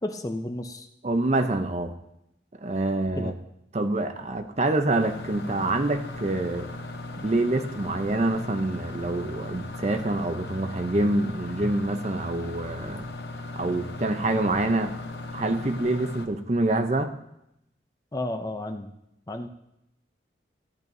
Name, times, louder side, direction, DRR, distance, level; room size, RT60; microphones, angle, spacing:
voice 1, 0.0-0.9 3.2-3.4 18.1-18.9 19.3-19.5, left 1 dB, 20° left, 6 dB, 0.6 m, -32 dB
voice 2, 1.0-1.9 2.6-3.3 3.7-6.7 7.2-13.1 13.5-15.0 15.3-17.1, right 2 dB, 40° right, 7 dB, 0.7 m, -26 dB
sound 1, 5.0-16.3, left 2 dB, 65° left, 0.8 m, -37 dB
14.5 x 10.5 x 2.7 m, 0.82 s
head